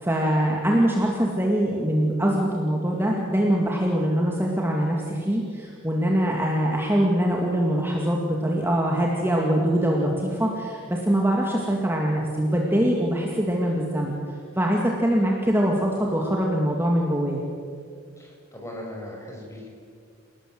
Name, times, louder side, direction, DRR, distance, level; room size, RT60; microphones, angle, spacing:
voice 1, 0.0-14.2 14.6-17.4, equal, 10° right, -1 dB, 2.4 m, -23 dB
voice 2, 18.2-19.7, left 1 dB, 15° left, -1 dB, 6.0 m, -38 dB
29.0 x 18.5 x 7.9 m, 2.2 s
head